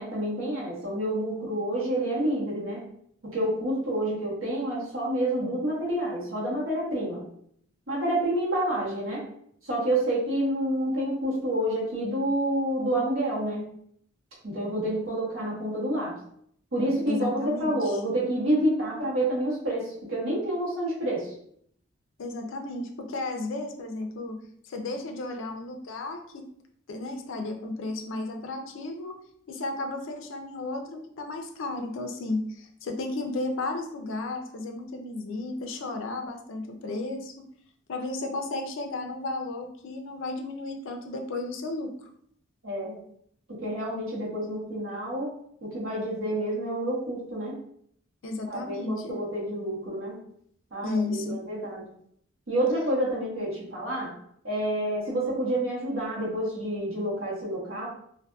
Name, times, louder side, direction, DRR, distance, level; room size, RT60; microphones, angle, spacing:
voice 1, 0.0-2.8 3.2-7.2 7.9-9.2 9.6-13.7 14.4-16.1 16.7-21.3 42.6-43.0 43.5-45.3 45.6-47.5 48.5-50.1 50.7-51.8 52.5-54.1 54.4-57.9, right 1 dB, 75° right, -6 dB, 1.1 m, -28 dB
voice 2, 17.1-18.0 22.2-24.4 24.6-26.5 26.9-29.1 29.5-37.5 37.9-42.1 48.2-49.2 50.8-51.4, left 2 dB, 70° left, 4 dB, 0.4 m, -33 dB
2.5 x 2.5 x 2.3 m, 0.67 s
head